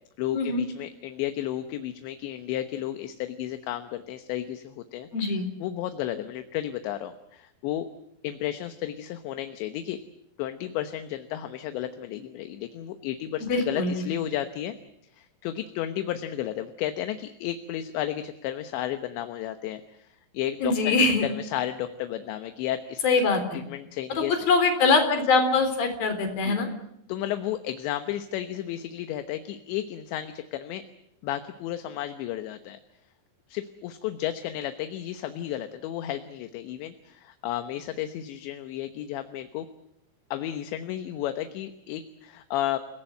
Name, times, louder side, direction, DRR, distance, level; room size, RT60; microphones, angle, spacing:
voice 1, 0.2-5.1 5.6-7.9 8.2-10.0 10.4-14.8 15.1-21.0 21.2-23.2 23.5-24.3 26.5-26.6 27.1-30.9 31.2-32.8 33.5-39.7 40.3-42.8, left 12 dB, 80° left, 8 dB, 3.3 m, -33 dB
voice 2, 5.1-5.5 13.5-14.0 20.6-21.3 23.0-23.6 24.5-26.7, left 3 dB, 55° left, 7 dB, 5.3 m, -23 dB
29.0 x 19.0 x 7.9 m, 0.79 s
omnidirectional pair, 5.3 m